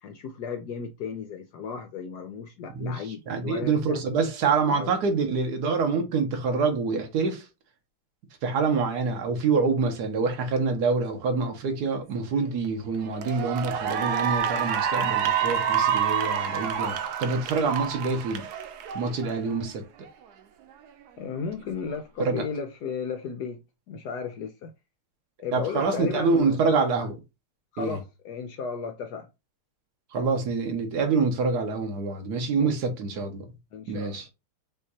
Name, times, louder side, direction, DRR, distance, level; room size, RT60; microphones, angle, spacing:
voice 1, 0.0-4.0 4.7-4.9 21.2-24.7 25.4-26.6 27.7-29.3 32.6-32.7 33.7-34.2, left 6 dB, 75° left, 0.9 m, -35 dB
voice 2, 2.7-7.4 8.4-18.5 18.9-19.8 22.2-22.4 25.5-27.2 27.8-28.0 30.1-33.4 33.9-34.3, right 4 dB, 60° right, 1.3 m, -26 dB
Cheering / Applause, 12.4-12.7 13.1-19.6, right 8 dB, 85° right, 0.8 m, -28 dB
5.6 x 2.9 x 2.7 m
omnidirectional pair, 2.3 m